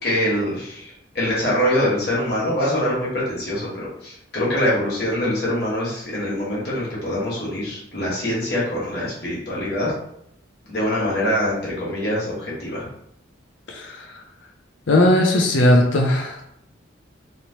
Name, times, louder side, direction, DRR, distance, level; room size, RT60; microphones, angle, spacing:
voice 1, 0.0-9.9 10.7-12.8, left 1 dB, 55° left, -6 dB, 1.4 m, -24 dB
voice 2, 14.9-16.4, left 1 dB, 70° left, 0 dB, 0.5 m, -17 dB
3.1 x 2.9 x 2.8 m, 0.75 s
head